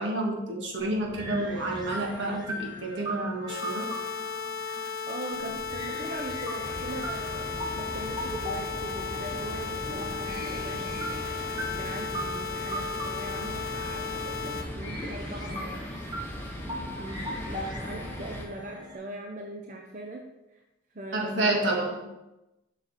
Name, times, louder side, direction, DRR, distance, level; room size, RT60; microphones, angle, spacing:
voice 1, 0.0-3.9 21.1-22.0, right 2 dB, 75° right, 0 dB, 1.5 m, -29 dB
sound 1, 0.8-19.0, right 1 dB, 25° right, 1.5 m, -39 dB
sound 2, 3.5-14.6, left 6 dB, 50° left, 0.8 m, -35 dB
voice 2, 5.0-7.5 7.8-11.3 11.7-15.9 16.5-20.2 20.9-21.8, right 1 dB, 40° right, 1 dB, 0.6 m, -40 dB
sound 3, 6.6-18.5, left 1 dB, 10° left, 0.7 m, -39 dB
7.0 x 5.8 x 4.1 m, 0.97 s
head